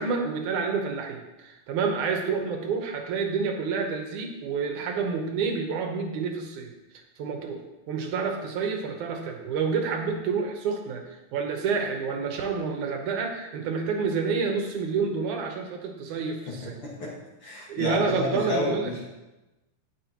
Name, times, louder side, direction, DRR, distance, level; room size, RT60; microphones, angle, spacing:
voice 1, 0.0-6.7 7.2-7.6 7.9-11.0 11.3-16.8 17.7-18.9, right 5 dB, 75° right, 2 dB, 2.6 m, -28 dB
voice 2, 16.5-17.1 17.4-19.1, left 2 dB, 50° left, -5 dB, 2.5 m, -30 dB
17.5 x 6.2 x 3.0 m, 1.0 s
omnidirectional pair, 3.6 m